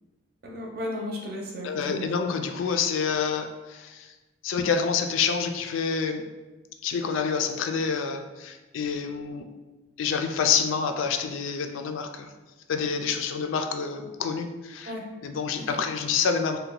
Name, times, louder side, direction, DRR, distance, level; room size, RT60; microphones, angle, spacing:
voice 1, 0.4-2.2 14.8-15.1 15.7-15.8, left 1 dB, 50° right, -1 dB, 0.6 m, -34 dB
voice 2, 1.6-4.1 4.4-6.2 6.8-9.4 10.0-12.3 12.7-14.9 15.2-16.6, left 6 dB, 80° left, 6 dB, 0.3 m, -27 dB
2.8 x 2.2 x 3.7 m, 1.2 s
head